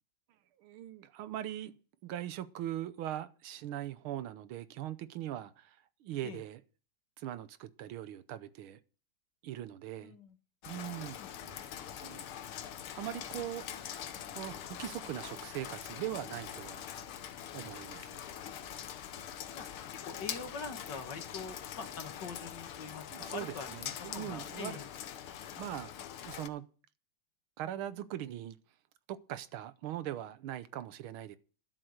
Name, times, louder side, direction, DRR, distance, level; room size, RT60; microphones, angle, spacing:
voice 1, 0.6-1.8 2.0-6.6 7.2-8.8 9.4-10.2 10.6-11.2 11.5-12.3 12.9-13.7 14.3-16.8 17.5-18.2 23.1-24.8 25.2-25.9 26.2-26.6 27.6-28.6 29.1-31.4, right 12 dB, 80° right, 1.7 m, -41 dB
voice 2, 10.0-10.3 11.2-11.3 19.5-19.7 20.1-24.9, left 5 dB, 60° left, 2.1 m, -44 dB
Rain, 10.6-26.5, left 10 dB, 85° left, 1.8 m, -44 dB
sound 1, 11.2-22.6, right 2 dB, 60° right, 5.9 m, -63 dB
12.0 x 8.0 x 6.5 m
omnidirectional pair, 2.3 m